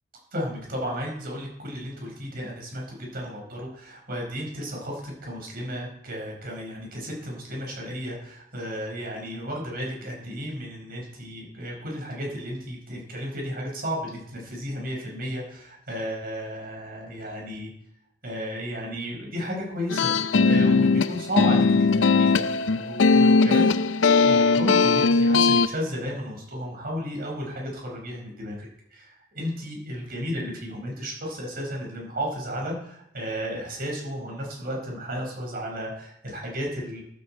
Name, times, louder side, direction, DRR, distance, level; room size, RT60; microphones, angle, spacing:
voice 1, 0.3-17.7 18.2-20.1 20.4-22.4 22.8-23.7 24.2-37.0, equal, 50° right, 0 dB, 5.3 m, -33 dB
sound 1, 19.9-25.7, left 4 dB, 65° left, 0.5 m, -19 dB
14.0 x 13.0 x 4.4 m, 0.76 s
head